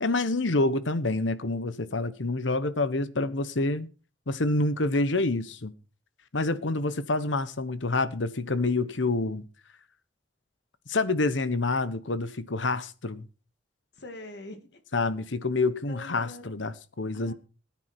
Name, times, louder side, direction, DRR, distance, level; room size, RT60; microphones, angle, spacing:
voice 1, 0.0-3.9 4.3-5.7 6.3-9.4 10.9-13.3 14.9-17.3, left 2 dB, 85° left, 1.2 m, -27 dB
voice 2, 4.9-5.3 13.9-14.8 15.9-16.6 17.1-17.3, left 2 dB, 65° left, 2.4 m, -44 dB
18.5 x 9.7 x 4.6 m
head